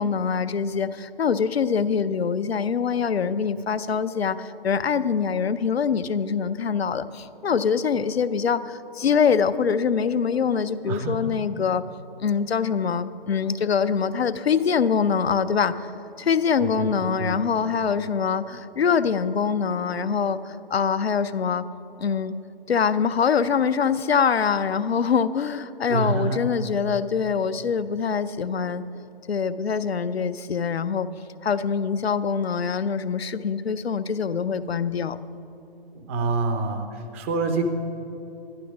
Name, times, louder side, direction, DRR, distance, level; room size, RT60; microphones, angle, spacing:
voice 1, 0.0-11.8 12.2-15.9 16.2-21.7 22.0-22.4 22.7-28.9 29.3-31.1 31.4-35.2, left 6 dB, 85° left, 13 dB, 0.6 m, -24 dB
voice 2, 10.9-11.3 16.6-16.9 17.2-17.4 25.9-26.4 35.9-36.9 37.1-37.6, right 3 dB, 15° right, 6 dB, 0.5 m, -26 dB
11.5 x 11.5 x 4.9 m, 2.9 s
figure-of-eight pair, 140°, 30 cm